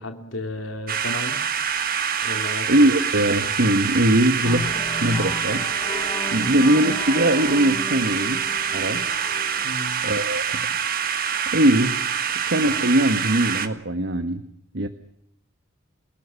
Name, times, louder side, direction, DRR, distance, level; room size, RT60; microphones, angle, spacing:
voice 1, 0.0-1.4 2.2-2.9 6.3-6.5 9.6-10.0, left 1 dB, 70° left, 5 dB, 2.8 m, -33 dB
sound 1, 0.9-13.7, right 7 dB, 45° right, 1.8 m, -26 dB
voice 2, 2.7-4.7 5.0-5.7 6.3-8.5 8.7-9.1 10.0-10.7 11.5-12.0 12.5-14.4 14.7-14.9, right 1 dB, 60° right, 9 dB, 1.4 m, -21 dB
sound 2, 4.4-9.8, left 2 dB, 25° left, 1.3 m, -35 dB
28.5 x 18.0 x 7.0 m, 0.74 s
head